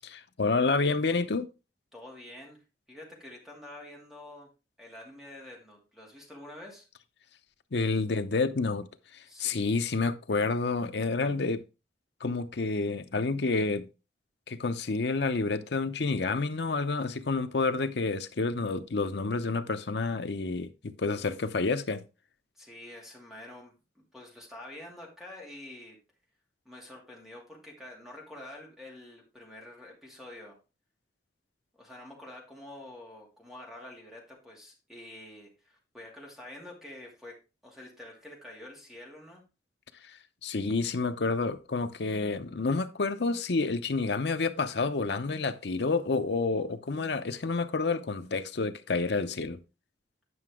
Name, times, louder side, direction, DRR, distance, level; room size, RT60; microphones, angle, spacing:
voice 1, 0.1-1.5 7.7-8.9 9.1-11.6 12.2-13.9 14.5-22.0 40.4-49.6, left 3 dB, 70° left, 0.7 m, -29 dB
voice 2, 1.9-2.6 2.9-4.5 4.8-6.9 9.2-9.6 22.5-26.0 26.6-30.6 31.8-39.4, left 1 dB, ahead, 2.6 m, -47 dB
9.5 x 5.9 x 3.7 m
head